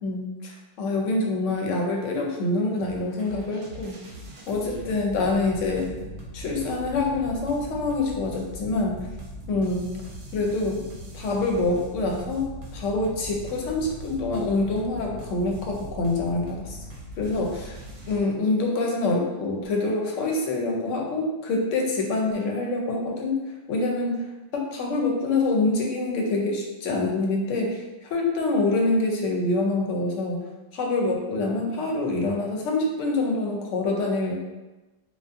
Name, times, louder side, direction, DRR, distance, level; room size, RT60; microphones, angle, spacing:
voice 1, 0.0-4.0 4.5-5.9 6.3-9.0 9.5-9.9 10.3-10.8 11.1-16.8 17.2-17.8 18.1-23.4 23.7-24.3 24.5-30.4 30.7-34.4, left 2 dB, 80° left, 0 dB, 0.9 m, -26 dB
sound 1, 2.8-18.2, right 1 dB, 75° right, 0.9 m, -40 dB
2.5 x 2.4 x 2.4 m, 1.1 s
omnidirectional pair, 1.3 m